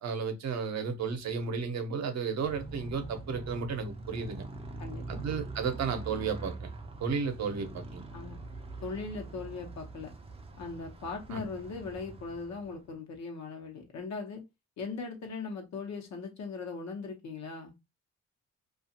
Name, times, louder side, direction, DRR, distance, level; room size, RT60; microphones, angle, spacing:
voice 1, 0.0-4.4 5.1-6.7 7.0-8.0 11.3-11.5, right 5 dB, 60° right, 0.8 m, -33 dB
Motorcycle, 2.3-12.9, right 2 dB, 20° right, 0.5 m, -43 dB
voice 2, 4.8-5.2 8.1-8.4 8.8-10.1 10.6-14.4 14.8-17.7, left 4 dB, 65° left, 0.9 m, -39 dB
2.4 x 2.4 x 2.7 m
cardioid pair, 90°, 30 cm